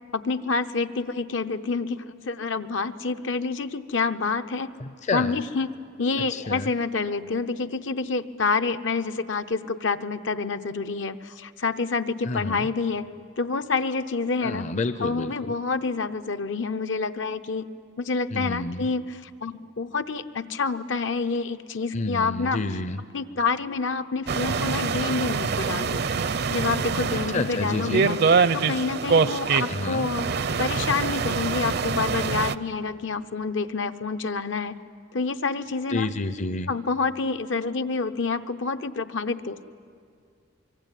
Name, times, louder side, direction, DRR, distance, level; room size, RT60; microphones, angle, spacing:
voice 1, 0.1-4.7 5.1-13.1 13.4-14.7 15.0-17.7 18.0-22.6 23.1-26.0 26.3-28.2 28.5-30.3 30.6-34.8 35.1-36.1 36.7-39.6, left 4 dB, 70° left, 10 dB, 0.8 m, -28 dB
voice 2, 4.8-5.4 6.3-6.7 12.2-12.7 14.4-15.3 18.3-18.9 21.9-23.0 27.3-28.1 29.7-30.1 35.9-36.7, left 3 dB, 35° left, 12 dB, 0.6 m, -29 dB
sound 1, 24.3-32.6, right 5 dB, 55° right, 0.6 m, -25 dB
25.0 x 23.5 x 9.2 m, 2.2 s
head